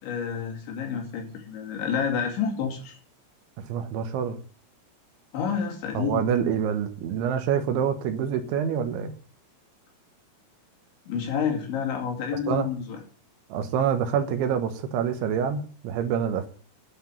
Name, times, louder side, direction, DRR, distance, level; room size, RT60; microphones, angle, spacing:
voice 1, 0.0-3.0 5.3-6.3 11.1-13.0, left 7 dB, 65° left, 2 dB, 4.7 m, -29 dB
voice 2, 3.6-4.4 5.9-9.1 12.5-12.7 13.5-16.5, right 8 dB, 75° right, 8 dB, 3.4 m, -26 dB
10.0 x 7.8 x 9.0 m, 0.41 s
omnidirectional pair, 5.8 m